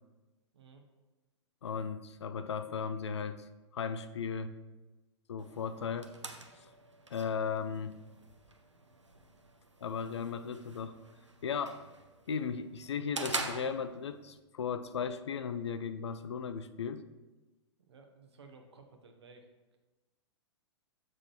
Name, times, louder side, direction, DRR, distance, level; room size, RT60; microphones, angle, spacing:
voice 1, 0.5-0.8 17.9-19.8, right 4 dB, 65° right, 4 dB, 1.0 m, -56 dB
voice 2, 1.6-3.4 3.7-4.6 5.3-6.1 7.1-8.0 9.8-11.0 11.4-11.8 12.3-17.0, left 6 dB, 70° left, 10 dB, 0.4 m, -36 dB
sound 1, 5.4-14.4, right 2 dB, 85° right, 0.6 m, -45 dB
7.4 x 6.1 x 3.0 m, 1.1 s
figure-of-eight pair, 105°, 15 cm